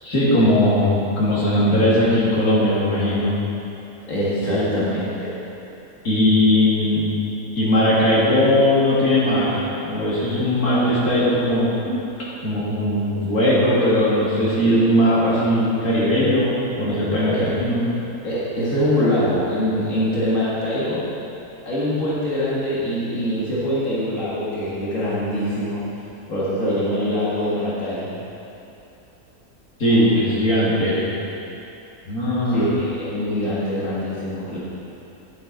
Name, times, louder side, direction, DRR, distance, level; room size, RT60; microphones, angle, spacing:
voice 1, 0.0-3.4 4.4-4.8 6.0-7.0 7.6-11.7 12.4-17.8 29.8-31.0 32.0-32.7, left 1 dB, 85° left, -8 dB, 2.8 m, -19 dB
voice 2, 4.0-5.3 11.9-12.0 17.3-17.5 18.2-21.0 21.7-25.8 26.3-28.1 32.5-34.6, equal, 60° left, -9 dB, 2.2 m, -23 dB
9.9 x 8.7 x 4.0 m, 2.9 s
omnidirectional pair, 1.5 m